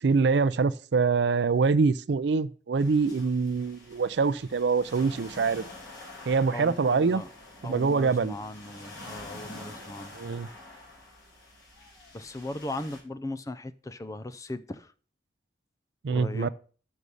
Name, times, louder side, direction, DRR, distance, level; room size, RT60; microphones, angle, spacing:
voice 1, 0.0-5.6 6.3-7.2 7.6-8.3 10.1-10.5 16.0-16.5, right 4 dB, 70° right, 0.4 m, -24 dB
sound 1, 2.8-13.0, left 2 dB, 70° left, 3.9 m, -47 dB
voice 2, 6.5-7.3 7.6-10.2 12.1-14.9 16.1-16.5, left 2 dB, 20° left, 0.4 m, -38 dB
6.3 x 5.4 x 6.7 m
head